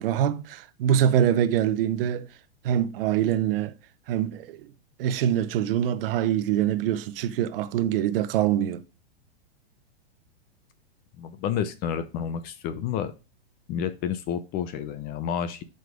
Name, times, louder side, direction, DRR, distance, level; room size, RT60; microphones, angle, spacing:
voice 1, 0.0-2.3 2.6-3.7 4.1-4.6 5.0-8.8, right 10 dB, 60° right, 0.8 m, -24 dB
voice 2, 11.2-13.1 13.7-15.6, left 8 dB, 30° left, 0.6 m, -30 dB
7.6 x 5.3 x 3.4 m
hypercardioid pair, 135°, 32 cm